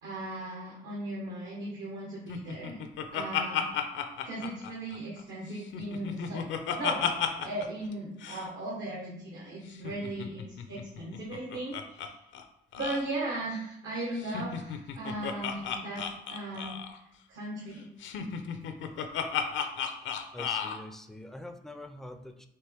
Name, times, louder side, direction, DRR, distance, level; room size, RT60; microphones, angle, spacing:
voice 1, 0.0-2.8 3.1-3.7 4.2-6.4 6.7-12.2 12.7-16.8 17.3-17.9, right 1 dB, 75° right, -4 dB, 1.2 m, -37 dB
Laughter, 2.3-5.2 5.6-7.7 7.9-8.0 8.2-8.5 9.7-12.1 12.3-12.4 12.7-13.0 14.2-17.0 18.0-20.8, left 7 dB, 70° left, 0.5 m, -33 dB
voice 2, 20.0-22.5, left 1 dB, ahead, 6 dB, 0.4 m, -45 dB
4.4 x 2.9 x 3.4 m, 0.80 s
cardioid pair, 90°, 20 cm